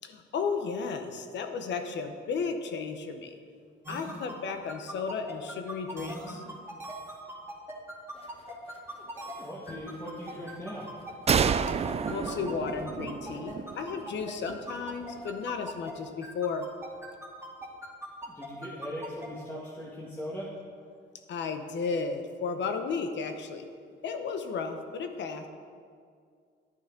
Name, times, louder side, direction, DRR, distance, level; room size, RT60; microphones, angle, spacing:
voice 1, 0.0-3.4 3.9-6.4 12.1-16.7 21.3-23.6 24.0-25.5, left 5 dB, 65° left, 6 dB, 0.9 m, -34 dB
sound 1, 3.8-15.9 16.2-19.3, right 1 dB, 10° right, 2.0 m, -40 dB
sound 2, 8.1-15.9, left 2 dB, 30° left, 1.3 m, -56 dB
voice 2, 9.4-10.9 18.3-20.5, equal, 10° left, -6 dB, 1.6 m, -39 dB
sound 3, 11.3-14.8, right 7 dB, 30° right, 0.4 m, -30 dB
10.5 x 9.0 x 3.8 m, 2.2 s
cardioid pair, 90°, 20 cm